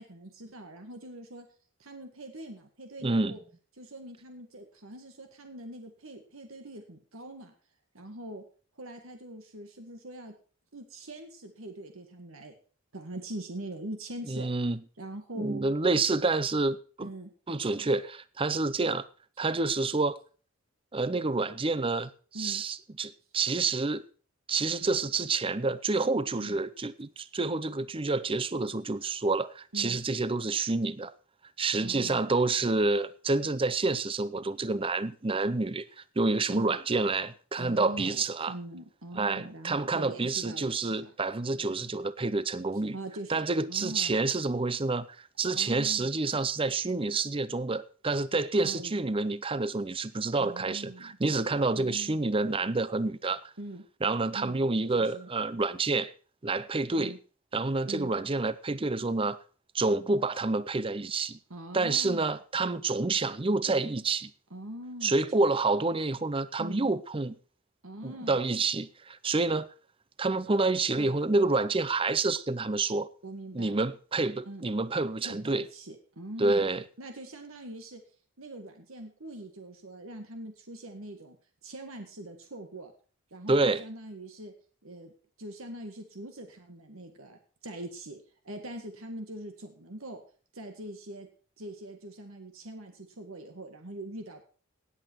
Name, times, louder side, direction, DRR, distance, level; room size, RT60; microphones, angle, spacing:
voice 1, 0.0-1.5 1.8-3.4 3.8-7.5 7.9-8.4 8.8-10.3 10.7-12.5 12.9-14.5 15.0-15.6 17.0-17.3 22.3-22.6 26.4-26.6 29.7-30.0 31.8-32.3 36.5-36.8 37.5-41.1 41.5-41.8 42.9-44.1 45.4-46.2 48.6-49.0 50.4-51.2 51.8-52.2 53.6-53.8 54.3-54.6 54.9-55.3 57.0-57.2 57.9-58.1 61.5-62.4 64.5-65.2 66.6-66.9 67.8-68.4 70.9-71.3 73.2-73.8 74.5-74.7 75.2-76.7 77.0-78.0 78.4-81.4 81.6-82.9 83.3-84.5 84.8-85.1 85.4-90.2 90.5-91.3 91.6-94.5, right 1 dB, 70° right, 1.8 m, -42 dB
voice 2, 3.0-3.4 14.3-14.8 15.4-17.1 17.5-19.1 19.4-20.2 20.9-24.0 24.5-31.1 31.6-35.8 36.2-38.5 39.1-43.0 43.3-45.1 45.4-53.5 54.0-56.1 56.4-57.2 57.5-59.4 59.7-61.4 61.7-64.3 65.0-67.3 68.0-69.7 70.2-73.1 73.5-75.6 76.4-76.8 83.5-83.8, right 3 dB, 25° right, 0.6 m, -28 dB
18.0 x 8.0 x 4.6 m
head